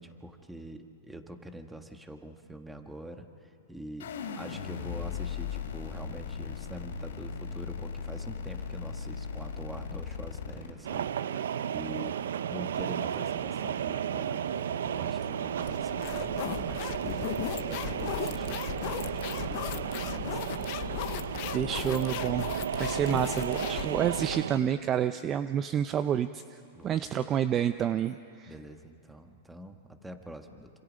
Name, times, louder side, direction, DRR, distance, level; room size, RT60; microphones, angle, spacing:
voice 1, 0.0-12.1 12.5-20.5 26.7-27.0 28.5-30.7, right 1 dB, 5° right, 6 dB, 1.5 m, -45 dB
sound 1, 4.0-10.7, left 6 dB, 80° left, 3.3 m, -37 dB
sound 2, 10.8-24.6, right 9 dB, 80° right, 0.6 m, -33 dB
sound 3, 15.6-24.4, left 16 dB, 50° left, 0.7 m, -37 dB
voice 2, 21.5-28.5, right 9 dB, 30° right, 11 dB, 0.6 m, -29 dB
27.0 x 26.5 x 5.3 m, 2.4 s
hypercardioid pair, 130°, 0 cm